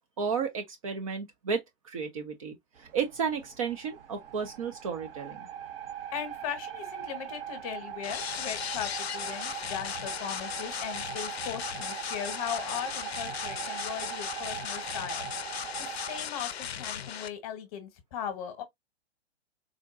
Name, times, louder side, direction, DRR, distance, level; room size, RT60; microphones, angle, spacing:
voice 1, 0.0-5.5, right 6 dB, 30° right, 0.5 m, -33 dB
sound 1, 2.8-16.2, right 10 dB, 55° right, 0.8 m, -41 dB
voice 2, 6.1-15.3 15.8-18.6, left 9 dB, 35° left, 1.0 m, -38 dB
sound 2, 8.0-17.3, left 8 dB, 65° left, 0.5 m, -37 dB
3.7 x 2.2 x 2.4 m
figure-of-eight pair, 120°, 33 cm